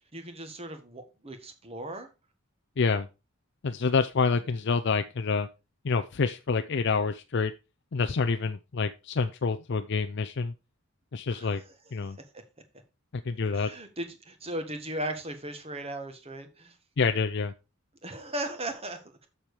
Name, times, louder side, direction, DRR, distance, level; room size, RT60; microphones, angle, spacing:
voice 1, 0.1-2.1 11.3-11.7 12.0-12.4 13.5-16.7 18.0-19.3, right 1 dB, 30° right, 1.6 m, -37 dB
voice 2, 2.8-3.1 3.6-5.5 5.8-7.5 7.9-10.5 11.1-11.6 11.9-12.2 13.1-13.7 17.0-17.5, left 4 dB, 55° left, 0.5 m, -27 dB
7.4 x 6.9 x 4.8 m
head